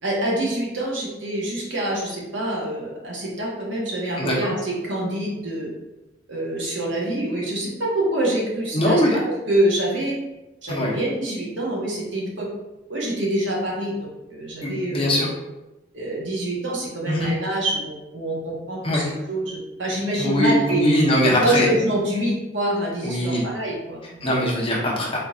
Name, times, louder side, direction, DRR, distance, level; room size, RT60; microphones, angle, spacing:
voice 1, 0.0-5.7 6.3-9.0 9.5-10.2 10.6-12.5 12.9-13.9 14.3-15.3 15.9-20.8 21.2-24.4, right 1 dB, 75° right, -3 dB, 1.1 m, -26 dB
voice 2, 4.2-4.5 8.7-9.2 10.7-10.9 14.6-15.3 17.1-17.3 18.8-19.0 20.2-21.7 23.0-23.4 24.2-25.2, left 1 dB, 30° left, -4 dB, 1.0 m, -21 dB
4.1 x 3.8 x 2.4 m, 1.0 s
head